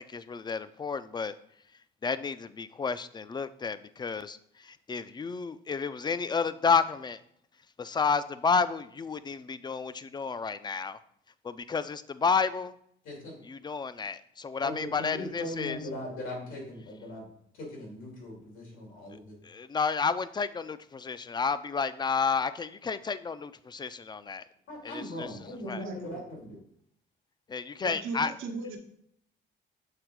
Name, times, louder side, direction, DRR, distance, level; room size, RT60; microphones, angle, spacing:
voice 1, 0.0-1.4 2.0-7.2 7.8-11.0 11.4-12.7 13.5-15.8 19.4-24.4 24.8-25.3 25.7-25.8 27.5-28.3, left 5 dB, 20° left, 14 dB, 0.4 m, -31 dB
voice 2, 13.0-13.4 14.6-17.3 17.5-19.4 24.7-26.6, left 1 dB, 85° left, -2 dB, 2.7 m, -39 dB
voice 3, 25.6-26.2 27.8-28.8, right 4 dB, 90° right, 2 dB, 1.0 m, -38 dB
6.7 x 3.5 x 4.7 m, 0.69 s
cardioid pair, 90°, 20 cm